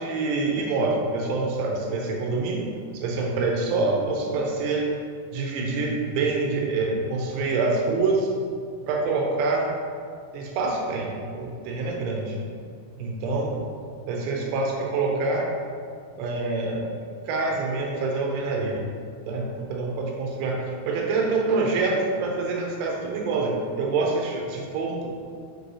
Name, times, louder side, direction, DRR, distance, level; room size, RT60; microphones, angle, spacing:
voice 1, 0.0-4.9 5.3-8.3 8.9-9.7 10.3-12.4 13.0-13.6 14.1-15.5 16.2-17.0 17.3-18.8 19.3-25.1, right 3 dB, 80° right, -1 dB, 3.1 m, -26 dB
6.4 x 6.1 x 2.7 m, 2.1 s
omnidirectional pair, 5.7 m